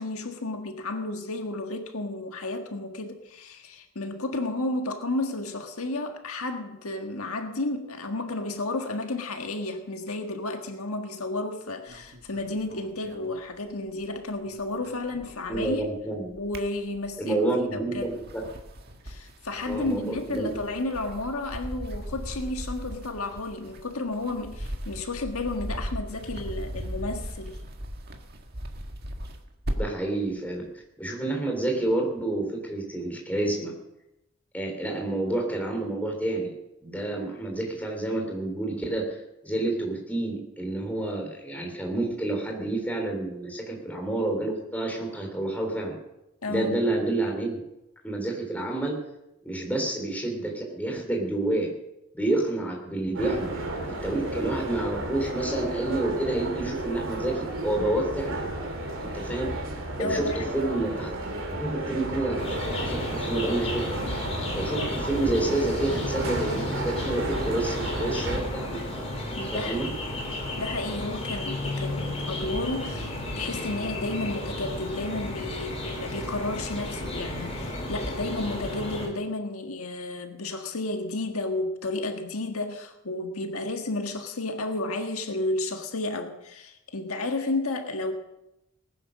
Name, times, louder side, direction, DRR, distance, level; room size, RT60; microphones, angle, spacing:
voice 1, 0.0-15.9 16.3-17.4 17.7-18.2 19.0-27.6 46.4-46.8 60.0-60.5 64.8-64.9 69.4-70.0 70.6-88.1, left 2 dB, 80° left, 5 dB, 1.6 m, -32 dB
sound 1, 11.9-14.0 14.3-15.9 16.3-17.3 17.8-30.1, equal, 45° right, 1.7 m, -38 dB
voice 2, 15.5-16.3 17.2-18.4 19.7-20.5 29.7-30.6 31.0-33.7 34.5-36.5 36.8-39.2 39.4-46.0 46.5-47.6 48.0-49.0 49.4-51.7 52.1-58.4 59.0-59.5 60.0-61.1 61.5-63.9 64.5-68.8 69.5-69.9, right 2 dB, 5° left, 0 dB, 3.4 m, -29 dB
sound 2, 53.1-68.4, right 1 dB, 60° right, 3.4 m, -33 dB
sound 3, 62.4-79.1, left 1 dB, 30° left, 3.1 m, -33 dB
19.5 x 10.0 x 6.5 m, 0.90 s
head